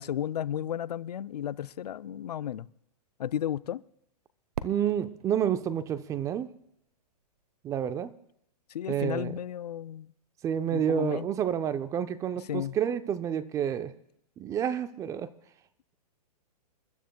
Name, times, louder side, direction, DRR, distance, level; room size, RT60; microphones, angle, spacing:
voice 1, 0.0-2.7 3.2-3.8 8.7-10.1 10.7-11.3 12.5-12.8, left 10 dB, 85° left, 0.5 m, -33 dB
Fireworks, 4.5-7.4, right 7 dB, 80° right, 1.0 m, -43 dB
voice 2, 4.6-6.5 7.6-8.1 8.9-9.4 10.4-13.9 14.4-15.3, right 9 dB, 15° right, 0.5 m, -29 dB
28.0 x 12.5 x 2.3 m
hypercardioid pair, 140°, 20 cm